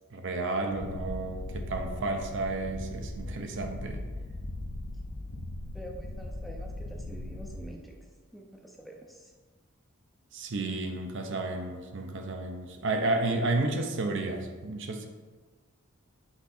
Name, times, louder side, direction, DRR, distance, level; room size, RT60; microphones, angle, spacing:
voice 1, 0.1-4.0 10.3-15.1, right 2 dB, 55° right, 4 dB, 0.7 m, -32 dB
Purr, 0.7-7.7, left 1 dB, 55° left, 0.6 m, -39 dB
voice 2, 5.7-8.0 8.3-9.3, right 1 dB, ahead, 0 dB, 0.5 m, -46 dB
5.8 x 4.6 x 4.3 m, 1.3 s
head